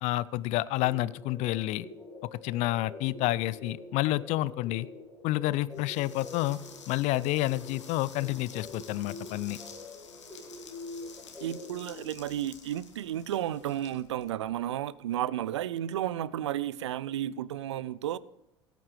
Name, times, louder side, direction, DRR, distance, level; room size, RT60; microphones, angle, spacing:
voice 1, 0.0-1.9 2.3-4.9 5.2-6.6 6.9-9.6, left 17 dB, 50° left, 0.4 m, -29 dB
sound 1, 0.8-12.0, left 2 dB, 10° left, 2.5 m, -46 dB
sound 2, 5.7-14.7, left 6 dB, 80° left, 1.6 m, -51 dB
voice 2, 11.4-18.2, right 11 dB, 75° right, 0.4 m, -32 dB
16.5 x 9.3 x 3.3 m
figure-of-eight pair, 70°, 15 cm